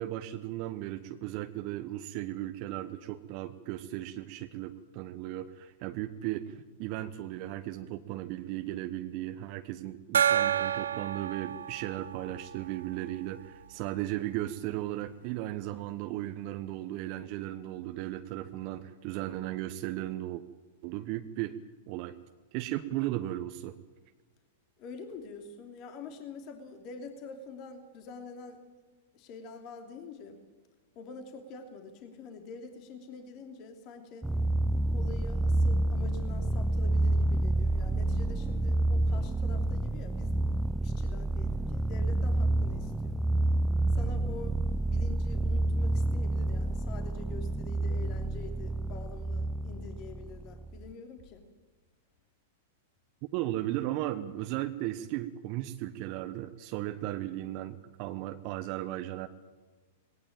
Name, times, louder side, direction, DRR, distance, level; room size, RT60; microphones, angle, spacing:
voice 1, 0.0-20.4 20.8-21.5 21.9-22.1 22.5-23.7 53.3-59.3, right 14 dB, 45° right, 9 dB, 1.1 m, -36 dB
Gong, 10.1-13.4, right 9 dB, 75° right, 0.8 m, -30 dB
voice 2, 24.8-28.6 29.1-30.4 30.9-34.3 34.9-40.4 40.8-43.2 43.9-51.4, left 4 dB, 45° left, 5 dB, 3.0 m, -46 dB
sound 1, 34.2-50.9, right 2 dB, 5° right, 0.6 m, -29 dB
19.0 x 18.0 x 9.0 m, 1.3 s
hypercardioid pair, 105°, 0 cm